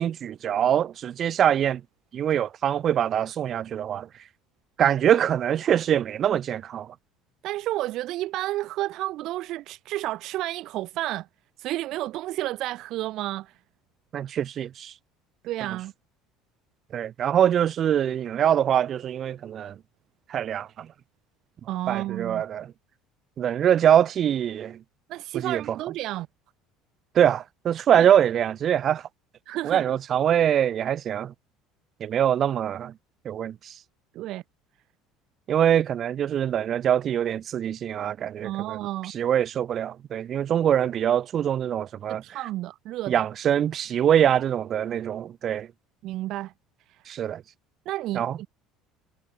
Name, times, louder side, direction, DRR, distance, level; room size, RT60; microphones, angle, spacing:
voice 1, 0.0-1.8 2.1-4.1 4.8-6.9 14.1-14.9 16.9-19.8 20.3-20.9 21.9-22.7 23.4-24.8 25.3-25.6 27.1-29.0 29.6-31.3 32.0-32.9 33.3-33.7 35.5-38.8 39.1-42.2 43.1-45.7 47.1-47.4 48.1-48.4, right 9 dB, 45° right, 1.9 m, -23 dB
voice 2, 7.4-11.3 11.6-13.6 15.4-15.9 21.7-22.4 25.1-26.3 28.0-28.1 29.5-29.8 34.1-34.4 38.4-39.1 42.1-43.3 46.0-46.5 46.9-47.0 47.8-48.5, right 16 dB, 60° right, 1.2 m, -31 dB
supercardioid pair, 110°, 0 cm